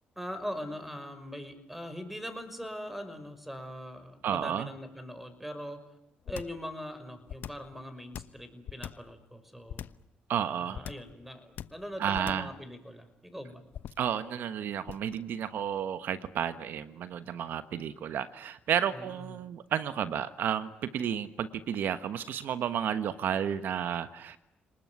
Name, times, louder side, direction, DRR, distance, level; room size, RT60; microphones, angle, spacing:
voice 1, 0.2-5.8 6.3-9.9 10.6-13.6 18.9-19.3, equal, 5° right, 10 dB, 5.8 m, -41 dB
voice 2, 4.2-4.7 10.3-10.8 12.0-12.5 14.0-24.4, right 9 dB, 70° right, 12 dB, 1.2 m, -32 dB
sound 1, 6.3-6.6 7.3-7.7 8.1-9.1 9.7-10.1 10.7-11.1 11.6-11.9 12.1-12.6 13.7-14.1 14.9-15.2, left 10 dB, 70° left, 1.0 m, -40 dB
29.5 x 20.0 x 9.5 m, 0.84 s
cardioid pair, 75°, 3 cm